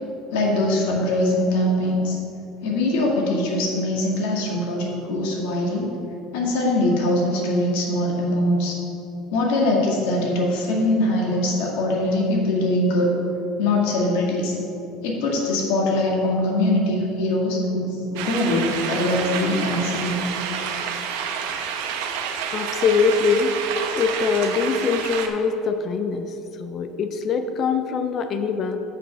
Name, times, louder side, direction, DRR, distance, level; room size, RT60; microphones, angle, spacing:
voice 1, 0.3-2.2 2.6-5.9 6.3-8.8 9.3-13.1 13.6-14.6 15.0-20.2, left 1 dB, 80° left, -2 dB, 1.9 m, -22 dB
sound 1, 18.2-25.3, right 7 dB, 90° right, 0.8 m, -29 dB
voice 2, 22.5-23.6 24.0-26.3 26.6-28.8, left 5 dB, 30° left, 8 dB, 0.4 m, -23 dB
7.9 x 6.4 x 5.5 m, 2.9 s
cardioid pair, 180°, 0 cm